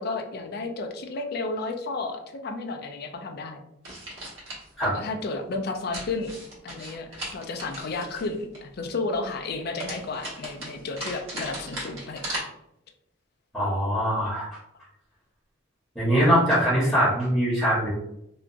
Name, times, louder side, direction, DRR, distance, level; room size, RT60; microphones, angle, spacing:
voice 1, 0.0-3.6 4.8-6.3 6.6-12.5, left 3 dB, 55° left, 4 dB, 0.4 m, -32 dB
sound 1, 3.8-4.7 5.9-8.6 9.8-12.4, right 1 dB, 80° right, 1.2 m, -37 dB
voice 2, 13.5-14.5 15.9-17.9, equal, 5° left, -10 dB, 1.0 m, -22 dB
2.8 x 2.3 x 2.5 m, 0.79 s
head